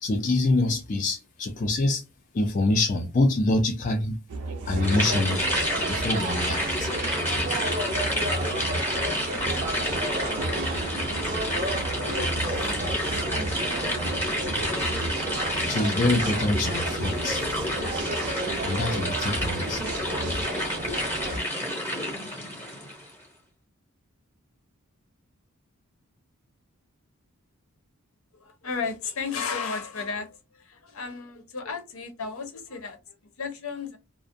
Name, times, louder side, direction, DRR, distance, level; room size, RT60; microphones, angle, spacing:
voice 1, 0.0-2.0 2.3-4.2 4.6-5.5 5.9-6.9 15.7-17.4 18.6-19.8 20.3-20.4, left 2 dB, 35° left, 0.3 m, -25 dB
sound 1, 4.3-20.5, right 2 dB, 85° right, 0.6 m, -35 dB
sound 2, 4.7-21.4, right 2 dB, 35° right, 0.4 m, -34 dB
sound 3, 4.8-23.1, equal, 10° left, 0.7 m, -29 dB
voice 2, 28.4-30.3 30.5-34.0, left 5 dB, 75° left, 0.7 m, -33 dB
2.4 x 2.0 x 2.5 m
head